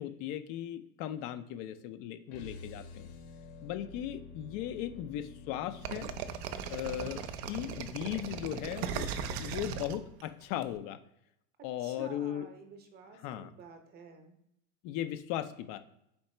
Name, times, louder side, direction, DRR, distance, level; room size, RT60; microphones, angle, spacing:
voice 1, 0.0-3.1 3.6-6.1 6.7-11.0 11.6-12.5 13.2-13.5 14.8-15.8, left 11 dB, 50° left, 9 dB, 0.4 m, -37 dB
sound 1, 2.3-8.4, left 4 dB, 80° left, 1.4 m, -50 dB
sound 2, 5.8-10.6, right 7 dB, 65° right, 0.6 m, -38 dB
voice 2, 11.6-14.3, right 3 dB, 30° right, 6 dB, 0.7 m, -51 dB
4.4 x 2.8 x 4.2 m, 0.79 s
supercardioid pair, 140°, 34 cm